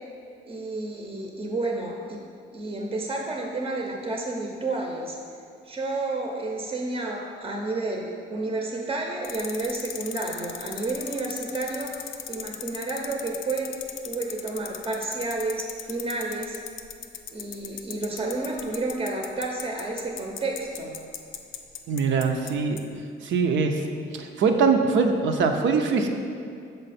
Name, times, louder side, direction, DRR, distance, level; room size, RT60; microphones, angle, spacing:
voice 1, 0.4-2.2 2.5-5.2 5.6-13.8 14.0-16.6 17.3-21.0, right 2 dB, 25° right, 0 dB, 0.7 m, -31 dB
sound 1, 9.2-22.5 22.8-22.9, left 10 dB, 80° left, 0.5 m, -36 dB
voice 2, 21.9-22.8 23.2-23.8 24.1-26.1, right 5 dB, 70° right, 4 dB, 0.6 m, -22 dB
6.6 x 4.3 x 4.2 m, 2.4 s
cardioid pair, 90°, 20 cm